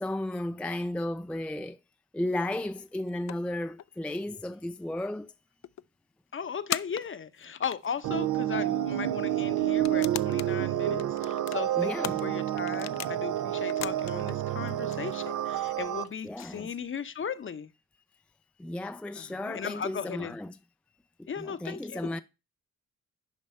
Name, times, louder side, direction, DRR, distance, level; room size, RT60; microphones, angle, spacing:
voice 1, 0.0-1.8 2.1-5.3 11.7-12.2 16.2-16.7 18.6-20.6 21.2-22.2, left 1 dB, 5° left, 0.4 m, -34 dB
sound 1, 2.7-4.1 4.5-4.6 4.8-4.9 5.6-5.8 6.7-8.0 8.7-8.8 9.7-10.5 10.9-13.2 13.6-14.4 14.7-17.1, left 13 dB, 65° left, 0.4 m, -39 dB
voice 2, 6.3-11.9 12.2-17.7 19.2-20.4 21.3-22.2, left 7 dB, 40° left, 0.8 m, -37 dB
sound 2, 8.0-16.0, right 12 dB, 80° right, 0.7 m, -29 dB
9.3 x 5.2 x 4.3 m
cardioid pair, 75°, 30 cm